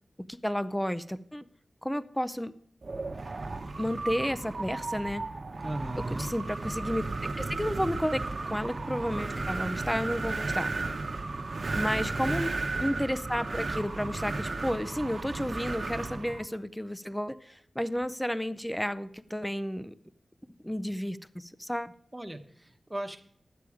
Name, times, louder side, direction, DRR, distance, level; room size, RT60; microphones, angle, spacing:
voice 1, 0.2-1.4 1.8-2.5 3.8-5.2 6.1-7.0 7.4-10.7 11.7-12.5 12.8-19.9 20.6-21.9, equal, 5° left, 15 dB, 0.4 m, -32 dB
Wind, 2.8-16.5, right 3 dB, 45° right, 0.9 m, -34 dB
voice 2, 5.6-6.3 11.8-12.3 22.1-23.2, right 1 dB, 10° right, 6 dB, 1.0 m, -38 dB
11.0 x 8.6 x 4.8 m, 0.65 s
wide cardioid pair, 110°, 0 cm